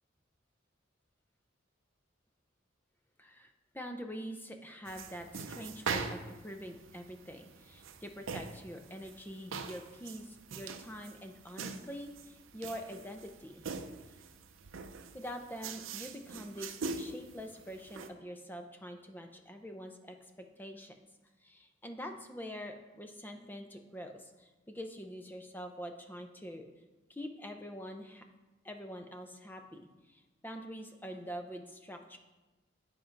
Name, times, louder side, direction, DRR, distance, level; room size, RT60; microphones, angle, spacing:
voice 1, 3.2-13.6 14.1-14.2 15.1-16.7 16.9-20.9 21.4-26.7 27.1-28.3 28.6-32.2, equal, 10° left, 5 dB, 0.5 m, -45 dB
sound 1, 4.9-18.1, right 4 dB, 80° right, 0.5 m, -43 dB
7.7 x 4.5 x 5.2 m, 1.1 s
head